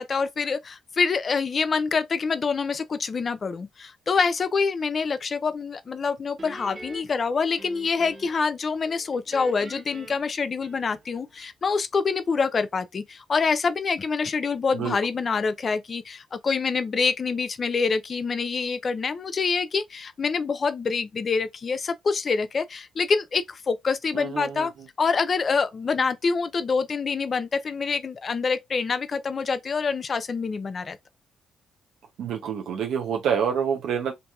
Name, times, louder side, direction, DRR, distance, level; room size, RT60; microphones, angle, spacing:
voice 1, 0.0-24.7 25.0-31.0, left 5 dB, 40° left, 0.4 m, -26 dB
Guitar, 6.4-8.5 8.8-11.2, right 2 dB, 45° right, 1.2 m, -44 dB
voice 2, 24.1-24.7 32.2-34.1, right 7 dB, 80° right, 0.6 m, -27 dB
2.8 x 2.6 x 2.3 m
cardioid pair, 90°, 0 cm